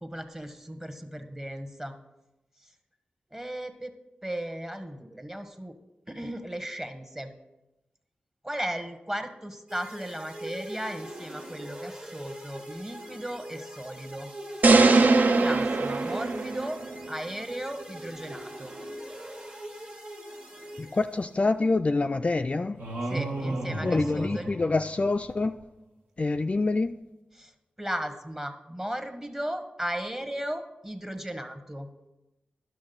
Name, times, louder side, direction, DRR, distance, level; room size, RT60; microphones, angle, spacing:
voice 1, 0.0-1.9 3.3-3.9 4.2-5.8 6.1-7.3 8.4-14.3 15.4-16.8 17.1-18.7 23.0-24.5 27.3-27.5 27.8-31.9, right 1 dB, 15° right, 1.0 m, -36 dB
sound 1, 9.7-21.5, right 1 dB, 35° right, 1.3 m, -42 dB
sound 2, 14.6-16.9, right 3 dB, 60° right, 0.5 m, -21 dB
voice 2, 20.8-22.8 23.8-25.5 26.2-27.0, left 3 dB, 40° left, 0.3 m, -26 dB
sound 3, 22.8-25.3, right 2 dB, 75° right, 1.4 m, -33 dB
10.5 x 6.2 x 3.9 m
cardioid pair, 45°, 3 cm